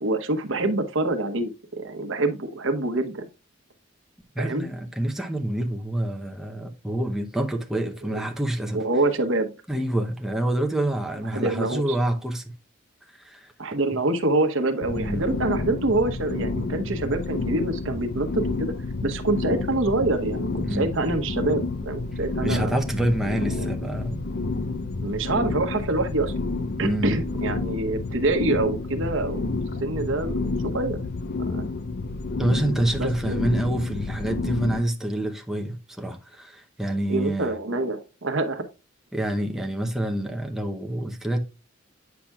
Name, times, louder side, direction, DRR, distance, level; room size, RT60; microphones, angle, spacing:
voice 1, 0.0-3.3 4.4-4.7 8.1-8.2 8.7-9.5 11.3-12.0 13.6-18.7 19.0-22.7 23.5-23.7 25.0-26.3 26.8-29.5 29.8-31.0 31.5-31.6 33.0-33.5 37.1-38.6, right 2 dB, 75° right, 1.0 m, -26 dB
voice 2, 4.3-8.8 9.7-12.4 13.1-13.5 14.9-15.4 20.6-20.9 22.4-24.2 26.8-27.2 32.4-37.5 39.1-41.4, right 1 dB, ahead, 0.7 m, -27 dB
sound 1, 14.8-34.8, left 3 dB, 55° left, 0.5 m, -30 dB
8.6 x 5.9 x 2.3 m
head